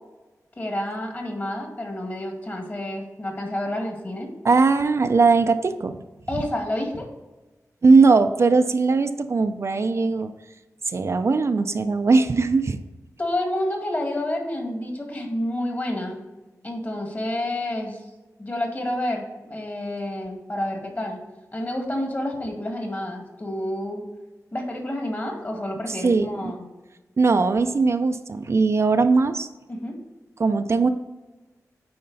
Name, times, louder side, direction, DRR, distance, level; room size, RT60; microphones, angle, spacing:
voice 1, 0.6-4.3 6.3-7.1 13.2-16.2 16.6-18.0 18.4-21.2 21.5-24.0 24.5-26.6 29.7-30.0, left 1 dB, 35° left, 1 dB, 1.9 m, -29 dB
voice 2, 4.4-5.9 7.8-10.3 10.9-12.8 25.9-26.5 27.2-29.5 30.4-30.9, right 4 dB, 50° right, 8 dB, 0.4 m, -19 dB
9.5 x 4.3 x 4.0 m, 1.1 s
wide cardioid pair, 105°, 6 cm